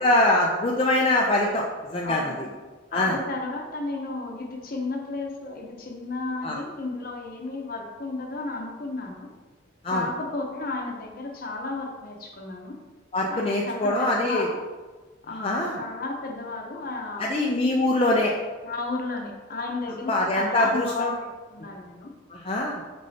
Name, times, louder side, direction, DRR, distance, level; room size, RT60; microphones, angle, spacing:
voice 1, 0.0-1.6 1.9-2.3 2.9-3.2 6.4-6.6 9.8-10.0 13.1-14.5 15.4-15.8 17.2-18.3 20.1-21.1 22.3-22.8, left 1 dB, 30° left, -2 dB, 0.5 m, -23 dB
voice 2, 2.0-2.5 2.9-9.3 9.9-12.8 13.3-14.6 15.3-17.4 18.6-22.1, left 3 dB, 50° left, 2 dB, 0.8 m, -33 dB
6.2 x 5.4 x 2.8 m, 1.3 s
head